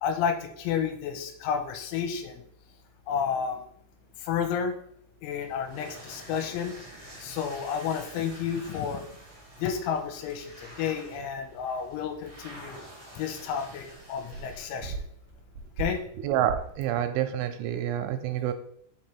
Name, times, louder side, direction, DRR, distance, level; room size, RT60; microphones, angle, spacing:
voice 1, 0.0-2.4 3.1-3.7 4.2-4.7 5.2-6.7 7.2-9.1 9.6-12.8 13.2-15.0 15.8-16.0, left 7 dB, 85° left, 6 dB, 3.0 m, -31 dB
sound 1, 5.4-15.0, right 1 dB, 40° right, 0.9 m, -48 dB
sound 2, 6.2-17.0, right 4 dB, 65° right, 1.5 m, -45 dB
voice 2, 16.2-18.5, right 11 dB, 85° right, 9 dB, 3.0 m, -28 dB
6.1 x 5.4 x 4.4 m, 0.67 s
omnidirectional pair, 5.7 m